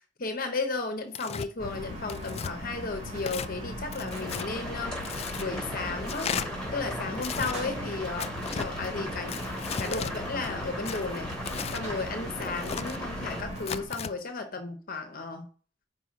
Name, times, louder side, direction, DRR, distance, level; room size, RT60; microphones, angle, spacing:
voice 1, 0.2-6.4 6.7-9.4 9.8-11.3 11.7-15.5, left 3 dB, 50° left, 6 dB, 0.9 m, -34 dB
Tearing, 1.1-1.5 2.1-2.5 3.2-3.5 3.9-4.5 5.0-5.5 6.1-6.5 7.1-7.5 8.2-8.7 9.3-10.1 10.8-11.8 12.4-13.0 13.6-14.1, left 7 dB, 35° left, 0.3 m, -35 dB
sound 1, 1.6-13.8, equal, 35° right, 2.0 m, -39 dB
sound 2, 4.1-13.4, equal, 5° left, 3.1 m, -38 dB
5.5 x 4.8 x 6.2 m, 0.43 s
head